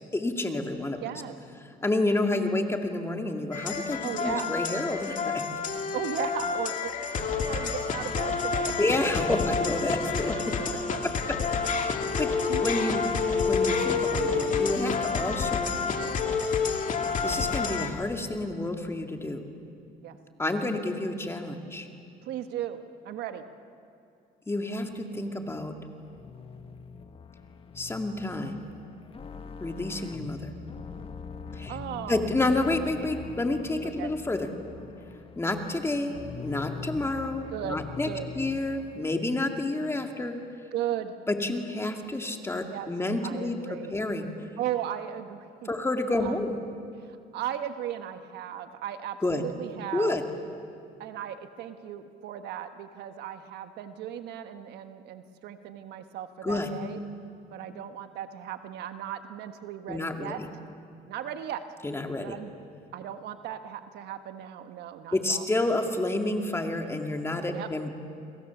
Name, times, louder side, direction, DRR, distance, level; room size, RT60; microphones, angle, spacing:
voice 1, 0.1-1.0 1.8-5.4 8.8-10.6 11.0-11.8 12.2-12.3 12.6-13.0 13.5-15.7 17.2-19.4 20.4-21.9 24.5-25.8 27.8-28.6 29.6-30.5 31.5-31.8 32.1-34.5 35.4-38.1 38.3-40.4 41.3-43.6 43.9-44.3 45.7-46.6 49.2-49.4 49.9-50.2 56.4-56.7 59.9-60.5 61.8-62.4 65.1-67.9, left 2 dB, 15° left, 4 dB, 2.3 m, -29 dB
voice 2, 1.0-1.4 4.0-4.5 5.9-8.7 10.6-11.6 12.5-12.7 20.0-20.2 22.2-22.8 23.0-23.4 31.7-32.2 33.8-34.1 37.5-38.3 40.7-41.1 42.7-42.9 43.2-44.0 44.6-45.7 46.2-46.3 47.0-50.2 51.0-57.0 57.5-60.4 61.1-61.6 62.2-62.5 62.9-65.4 67.5-67.7, right 11 dB, 80° right, 8 dB, 1.4 m, -36 dB
sound 1, 3.5-17.9, left 5 dB, 50° left, 2.3 m, -28 dB
sound 2, 25.1-39.0, left 5 dB, 35° left, 1.5 m, -43 dB
30.0 x 22.5 x 7.2 m, 2.5 s
cardioid pair, 110°, 17 cm